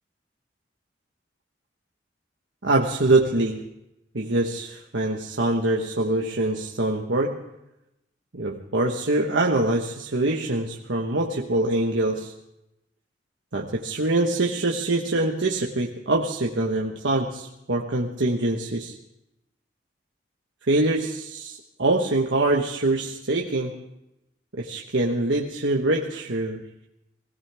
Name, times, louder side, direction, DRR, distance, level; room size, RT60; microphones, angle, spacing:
voice 1, 2.6-3.6 4.1-7.4 8.3-12.3 13.5-19.0 20.7-23.8 24.5-26.6, right 2 dB, 80° right, 0 dB, 1.3 m, -24 dB
22.0 x 17.0 x 3.5 m, 0.87 s
head